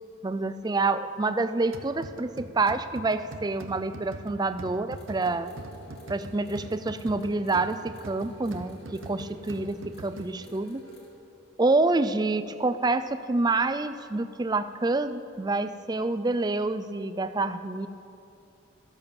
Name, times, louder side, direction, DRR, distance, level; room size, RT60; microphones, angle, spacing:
voice 1, 0.2-5.5 6.1-10.8 11.6-17.9, right 3 dB, 20° right, 11 dB, 0.4 m, -27 dB
sound 1, 1.7-10.6, right 2 dB, 85° right, 0.9 m, -44 dB
sound 2, 4.9-11.1, right 2 dB, 30° left, 4.0 m, -49 dB
13.5 x 10.5 x 7.1 m, 2.6 s
head